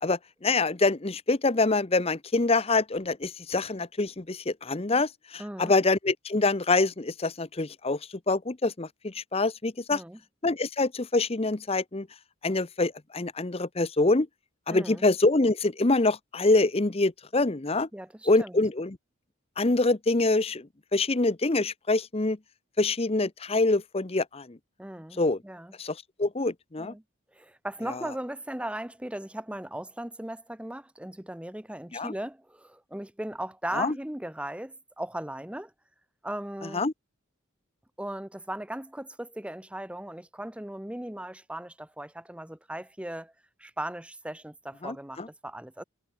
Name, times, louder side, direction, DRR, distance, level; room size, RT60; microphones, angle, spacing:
voice 1, 0.0-8.0 8.3-10.0 10.4-12.1 12.4-14.3 14.7-17.9 18.3-19.0 19.6-20.7 20.9-22.4 22.8-24.6 25.2-25.4 25.8-26.9 31.9-32.1 33.7-33.9 36.7-36.9 44.8-45.3, left 2 dB, 30° left, 0.8 m, -25 dB
voice 2, 5.4-5.7 9.9-10.2 14.7-15.0 17.9-18.6 24.8-25.7 26.8-27.0 27.3-35.7 36.2-36.8 38.0-43.3 43.6-45.8, right 1 dB, 5° right, 0.8 m, -38 dB
head